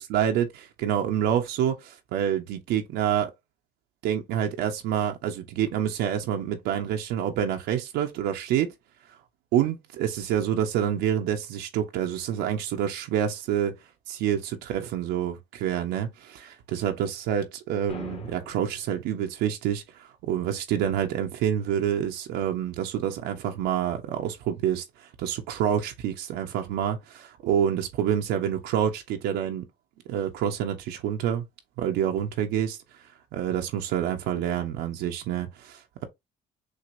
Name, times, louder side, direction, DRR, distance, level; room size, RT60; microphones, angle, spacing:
voice 1, 0.0-3.3 4.0-8.7 9.5-13.7 14.1-24.8 25.2-29.7 30.1-31.5 31.8-32.8 33.3-36.1, right 9 dB, 90° right, 1.0 m, -27 dB
sound 1, 17.9-18.9, left 3 dB, 35° left, 1.5 m, -41 dB
6.4 x 2.8 x 2.7 m
cardioid pair, 110°, 17 cm